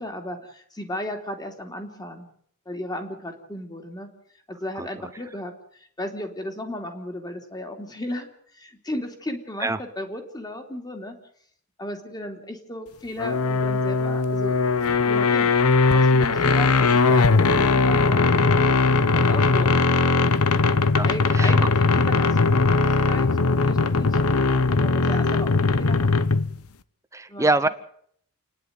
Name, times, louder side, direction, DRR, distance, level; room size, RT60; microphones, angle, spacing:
voice 1, 0.0-2.3 2.7-4.1 4.5-8.3 8.5-11.2 11.8-14.6 15.0-15.5 15.9-18.6 19.1-20.4 21.0-26.1 27.3-27.5, left 1 dB, 20° left, 4 dB, 2.9 m, -35 dB
sound 1, 13.2-26.6, left 3 dB, 75° left, 0.9 m, -19 dB
voice 2, 27.1-27.7, right 2 dB, 15° right, 12 dB, 0.8 m, -23 dB
29.0 x 10.5 x 9.4 m, 0.65 s
head